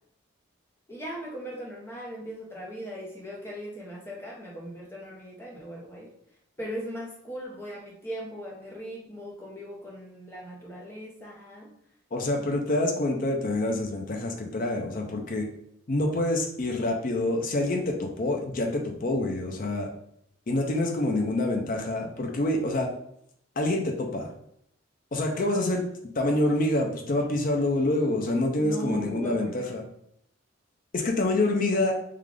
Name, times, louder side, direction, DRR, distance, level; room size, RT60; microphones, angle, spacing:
voice 1, 0.9-6.1 6.6-11.7 25.3-25.6 28.5-29.8, equal, 10° left, -2 dB, 0.7 m, -39 dB
voice 2, 12.1-15.5 15.9-19.9 20.5-22.9 23.6-24.3 25.1-25.8 26.1-29.8 30.9-31.9, left 2 dB, 40° left, 2 dB, 0.5 m, -26 dB
3.7 x 2.4 x 3.2 m, 0.71 s
head